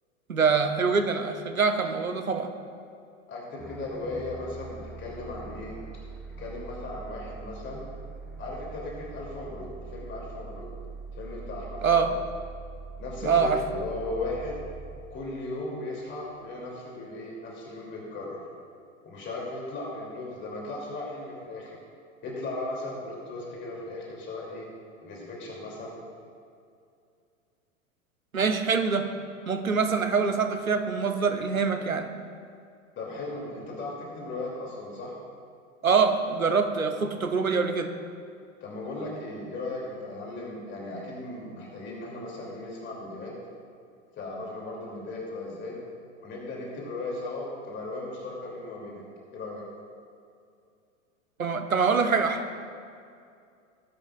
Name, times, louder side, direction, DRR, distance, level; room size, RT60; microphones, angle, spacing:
voice 1, 0.3-2.5 11.8-12.1 13.2-13.6 28.3-29.1 29.5-32.1 35.8-37.9 51.4-52.4, right 5 dB, 85° right, 7 dB, 1.0 m, -24 dB
voice 2, 3.3-5.8 6.4-7.8 8.4-10.7 11.2-12.1 13.0-14.6 15.1-18.4 19.0-21.8 22.2-24.7 25.0-26.0 33.0-35.2 38.6-43.3 44.1-45.8 46.2-49.0 49.3-49.6, left 2 dB, 30° left, -2 dB, 2.8 m, -37 dB
sound 1, 3.6-16.3, right 4 dB, ahead, 0.4 m, -43 dB
18.5 x 10.5 x 2.4 m, 2.4 s
figure-of-eight pair, 90°, 40 cm